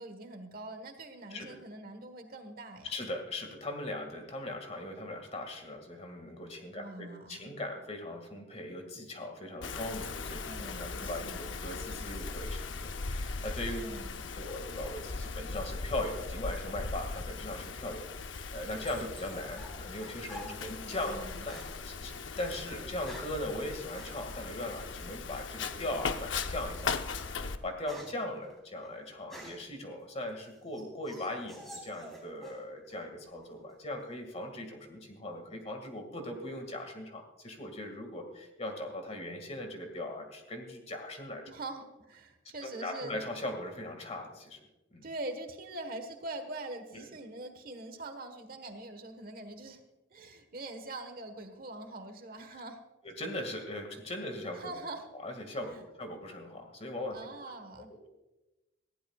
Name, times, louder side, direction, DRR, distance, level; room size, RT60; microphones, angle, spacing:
voice 1, 0.0-2.9 6.7-7.5 10.4-11.6 13.7-14.2 20.4-21.5 41.5-43.2 45.0-49.8 50.1-52.8 54.5-55.1 55.6-55.8 57.1-57.9, right 2 dB, 50° right, 7 dB, 1.4 m, -43 dB
voice 2, 2.8-13.9 14.4-21.6 21.8-41.4 42.6-44.6 44.9-45.0 46.9-47.1 53.0-54.7 55.2-57.2 57.9-58.1, left 1 dB, 35° left, 4 dB, 2.0 m, -39 dB
Wind, 9.6-27.6, left 4 dB, 80° left, 0.7 m, -39 dB
sound 1, 18.5-21.2 21.5-21.8 22.7-23.4 23.9-24.2 25.6-26.0 26.6-26.7 27.1-29.8 30.3-32.6 32.9-33.5, equal, ahead, 3.8 m, -50 dB
19.5 x 15.0 x 2.4 m, 1.0 s
head